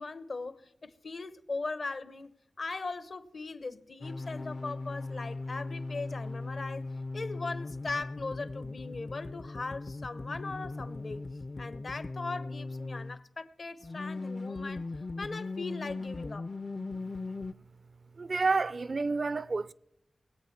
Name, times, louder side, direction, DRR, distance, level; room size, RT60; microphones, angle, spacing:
voice 1, 0.0-2.3 2.6-6.9 7.1-11.3 11.6-14.9 15.2-16.5, left 3 dB, 65° left, 0.9 m, -39 dB
sound 1, 4.0-13.2 13.8-17.5, left 3 dB, 50° left, 0.5 m, -39 dB
voice 2, 18.2-19.7, right 4 dB, 60° right, 0.4 m, -29 dB
20.5 x 8.3 x 5.8 m
cardioid pair, 45°, 0 cm